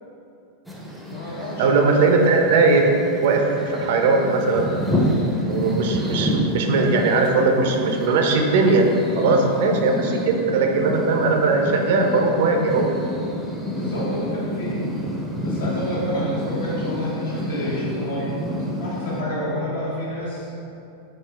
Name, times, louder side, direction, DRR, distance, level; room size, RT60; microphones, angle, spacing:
sound 1, 0.7-19.2, left 1 dB, ahead, 0.6 m, -28 dB
voice 1, 1.1-2.1 5.6-5.9 9.2-9.5 13.7-14.8 15.4-18.3 18.8-20.5, equal, 65° left, -6 dB, 1.2 m, -29 dB
voice 2, 1.6-5.0 5.5-8.9 9.2-12.9, right 3 dB, 55° right, 3 dB, 0.4 m, -19 dB
4.4 x 3.4 x 3.3 m, 2.7 s
figure-of-eight pair, 90°, 0 cm